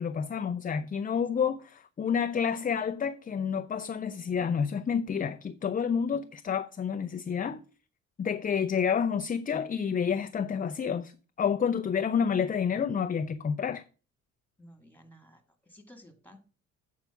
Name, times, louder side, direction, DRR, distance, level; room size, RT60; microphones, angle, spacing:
voice 1, 0.0-7.6 8.2-11.1 11.4-13.8, left 7 dB, 30° left, 0.5 m, -29 dB
voice 2, 14.6-16.4, equal, 5° left, 2.3 m, -54 dB
8.1 x 4.7 x 5.8 m
cardioid pair, 90°, 30 cm